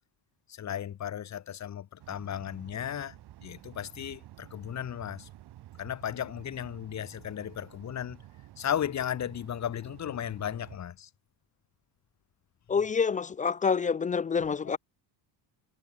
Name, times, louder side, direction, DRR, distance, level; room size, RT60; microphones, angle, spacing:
voice 1, 0.5-3.2 3.4-5.3 5.8-8.2 8.6-11.1 14.7-14.8, left 10 dB, 35° left, 2.3 m, -35 dB
sound 1, 2.0-10.8, right 14 dB, 55° right, 5.6 m, -51 dB
voice 2, 12.7-14.8, left 6 dB, 20° left, 0.3 m, -27 dB
cardioid pair, 155°, 47 cm